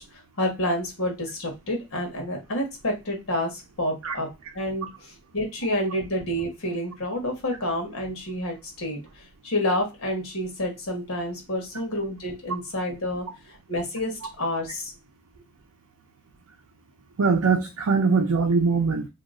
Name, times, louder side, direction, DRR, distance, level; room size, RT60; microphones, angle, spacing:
voice 1, 0.4-4.3 4.5-4.9 5.3-9.0 9.4-14.9, left 1 dB, 80° left, 2 dB, 1.2 m, -29 dB
voice 2, 17.2-19.1, right 4 dB, 85° right, 2 dB, 0.5 m, -22 dB
2.8 x 2.1 x 3.6 m, 0.24 s
head